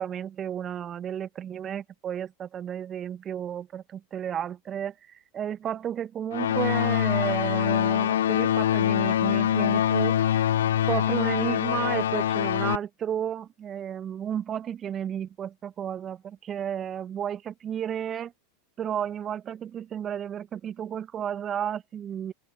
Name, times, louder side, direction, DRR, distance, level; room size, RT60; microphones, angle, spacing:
voice 1, 0.0-4.9 5.3-10.5 10.9-18.3 18.8-22.3, right 9 dB, 30° right, 1.5 m, -32 dB
sound 1, 6.3-12.8, left 11 dB, 75° left, 0.7 m, -24 dB
open air
hypercardioid pair, 90°, 0 cm